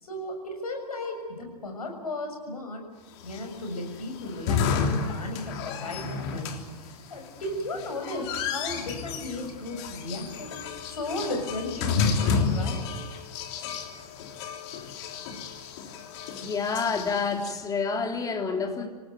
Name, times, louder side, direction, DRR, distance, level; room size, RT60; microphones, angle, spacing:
voice 1, 0.0-2.9 3.2-6.5 6.8-12.8, left 1 dB, 70° left, 4 dB, 6.9 m, -35 dB
sound 1, 3.2-17.5, left 5 dB, 45° left, 3.4 m, -31 dB
voice 2, 16.4-18.9, left 5 dB, 20° left, 4 dB, 3.4 m, -28 dB
27.5 x 18.0 x 9.4 m, 1.4 s
figure-of-eight pair, 95°, 20 cm